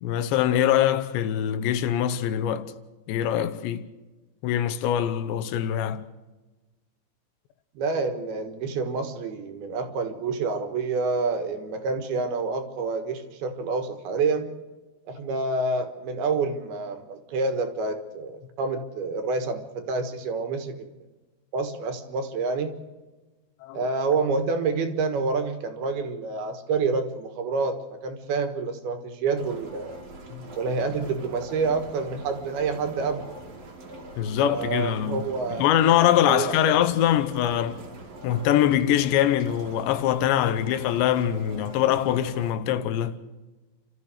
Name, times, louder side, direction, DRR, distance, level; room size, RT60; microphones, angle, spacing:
voice 1, 0.0-2.7 3.1-3.8 4.4-6.1 23.6-23.8 30.3-30.5 34.2-37.8 38.2-43.2, left 11 dB, 85° left, 3.2 m, -23 dB
voice 2, 7.7-14.6 15.1-20.9 21.5-22.7 23.7-30.0 30.6-33.4 34.4-35.7 36.3-36.8, right 4 dB, 70° right, 3.2 m, -28 dB
sound 1, 29.4-42.5, right 2 dB, 45° right, 2.4 m, -43 dB
30.0 x 13.5 x 6.6 m
omnidirectional pair, 5.0 m